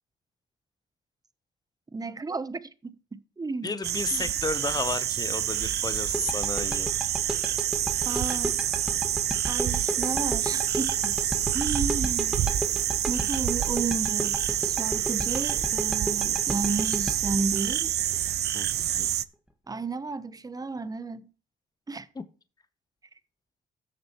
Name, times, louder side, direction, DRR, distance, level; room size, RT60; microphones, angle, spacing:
voice 1, 1.9-3.7 4.1-4.3 8.0-8.6 9.5-11.2 11.5-12.5 13.1-17.9 19.7-21.3 21.9-22.1, right 3 dB, 20° right, 0.8 m, -33 dB
voice 2, 3.6-6.9 18.5-19.1 22.1-22.2, left 4 dB, 20° left, 0.8 m, -33 dB
sound 1, 3.8-19.3, right 11 dB, 55° right, 0.5 m, -27 dB
sound 2, 6.1-18.9, right 1 dB, 5° right, 1.6 m, -33 dB
15.5 x 6.6 x 3.0 m
cardioid pair, 90°, 20 cm